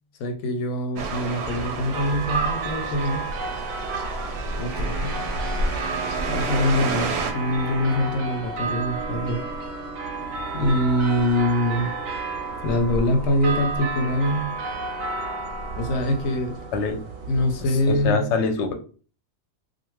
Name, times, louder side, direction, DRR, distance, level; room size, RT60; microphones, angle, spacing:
voice 1, 0.2-3.3 4.6-5.2 6.3-9.5 10.5-11.9 12.6-14.5 15.8-16.6 17.3-18.3, left 1 dB, 85° left, 1.0 m, -24 dB
sound 1, 1.0-7.3, right 4 dB, 65° right, 0.7 m, -30 dB
sound 2, 1.4-18.1, right 2 dB, 85° right, 1.0 m, -32 dB
Wind instrument woodwind instrument, 4.6-8.6, right 2 dB, 35° right, 0.7 m, -36 dB
voice 2, 17.9-18.7, left 4 dB, 65° left, 0.8 m, -24 dB
2.5 x 2.4 x 3.0 m
omnidirectional pair, 1.4 m